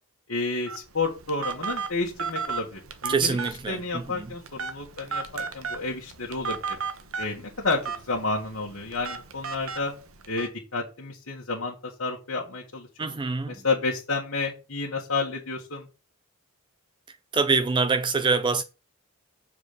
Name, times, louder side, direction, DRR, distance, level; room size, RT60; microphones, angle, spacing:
voice 1, 0.3-3.4 3.7-6.8 7.2-9.9 10.3-13.1 13.5-15.9, left 3 dB, 65° left, 1.6 m, -30 dB
Telephone, 0.7-10.5, right 5 dB, 70° right, 1.0 m, -35 dB
voice 2, 3.1-4.3 13.0-13.6 17.3-18.6, right 4 dB, 20° right, 0.4 m, -25 dB
7.4 x 4.1 x 6.7 m
head